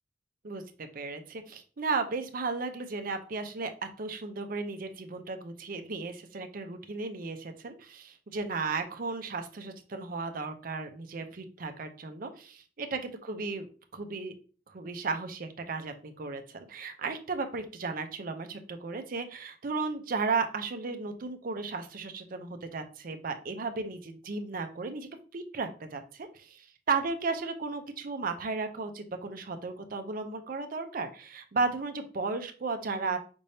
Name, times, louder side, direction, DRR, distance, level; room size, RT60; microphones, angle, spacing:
voice 1, 0.4-3.7 4.0-13.7 13.9-14.3 14.7-33.2, right 4 dB, 50° right, 7 dB, 0.5 m, -35 dB
5.2 x 3.3 x 2.7 m, 0.38 s
head